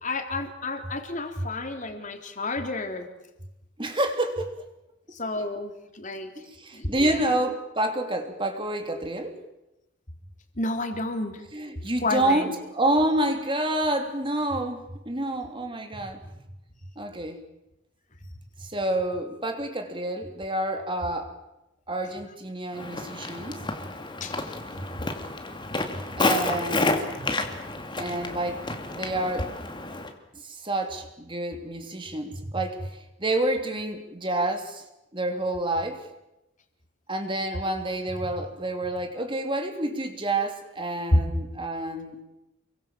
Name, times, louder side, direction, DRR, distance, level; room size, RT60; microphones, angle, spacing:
voice 1, 0.0-3.1 5.1-6.3 6.7-7.3 10.6-11.4 12.0-12.5 24.1-24.4 41.1-41.2, left 2 dB, 40° left, 5 dB, 3.5 m, -29 dB
voice 2, 3.8-4.5 6.4-9.4 11.5-16.4 17.0-17.4 18.6-21.3 21.9-23.7 26.2-27.3 28.0-28.6 28.9-29.5 30.3-34.8 35.1-36.1 37.1-42.2, right 1 dB, 25° right, 5 dB, 3.2 m, -28 dB
Walk footsteps, 22.7-30.1, left 2 dB, 25° left, 2.5 m, -30 dB
30.0 x 23.5 x 7.5 m, 0.92 s
head